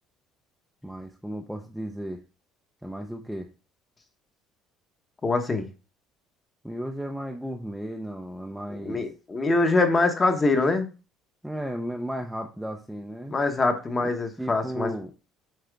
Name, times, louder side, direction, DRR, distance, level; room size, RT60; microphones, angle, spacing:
voice 1, 0.8-2.2 2.8-3.5 6.6-9.0 11.4-13.4 14.0-14.1 14.4-15.1, equal, ahead, 2 dB, 0.6 m, -34 dB
voice 2, 5.2-5.7 8.8-10.9 13.3-14.9, left 3 dB, 20° left, 6 dB, 1.0 m, -24 dB
7.6 x 4.2 x 3.4 m, 0.32 s
cardioid pair, 150°, 0 cm